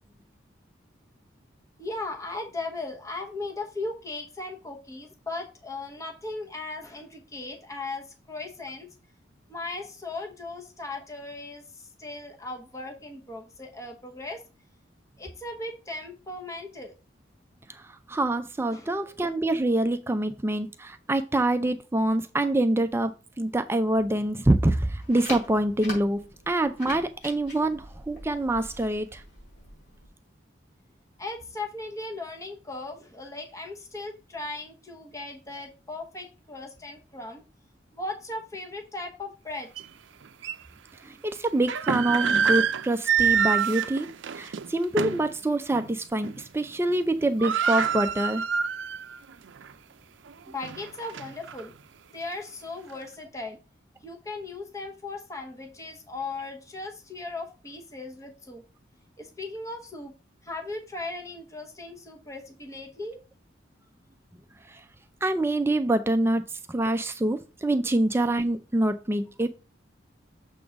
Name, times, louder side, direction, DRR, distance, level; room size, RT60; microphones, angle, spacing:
voice 1, 1.8-8.9 9.5-14.4 15.2-17.0 18.7-18.9 31.2-37.4 37.9-39.9 50.5-51.7 52.1-53.6 54.0-58.6 59.2-60.1 60.4-63.2, left 2 dB, 15° left, 0.9 m, -37 dB
voice 2, 17.7-26.2 26.5-29.2 41.0-44.1 44.3-48.4 64.7-64.8 65.2-69.5, right 1 dB, 10° right, 0.4 m, -26 dB
sound 1, 25.0-30.1, left 1 dB, 65° left, 4.1 m, -42 dB
sound 2, 39.8-39.9 40.4-40.5 41.5-45.3 45.7-45.9 46.2-46.7 46.9-47.0 47.2-49.2 49.6-49.7 50.3-51.6, right 7 dB, 70° right, 0.5 m, -26 dB
6.9 x 3.8 x 5.0 m
head